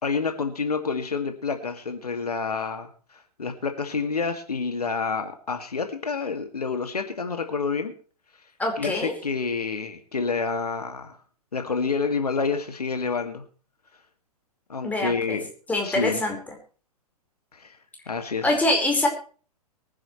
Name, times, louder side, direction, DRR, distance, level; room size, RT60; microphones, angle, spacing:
voice 1, 0.0-7.9 8.8-11.2 11.5-13.4 14.7-15.5 15.8-16.2 17.5-17.8 18.1-18.5, left 4 dB, 75° left, 6 dB, 2.4 m, -28 dB
voice 2, 8.6-9.1 14.8-15.4 15.7-16.4 18.4-19.1, left 1 dB, 5° left, 1 dB, 4.8 m, -24 dB
24.0 x 10.5 x 3.3 m, 0.40 s
figure-of-eight pair, 115°, 20 cm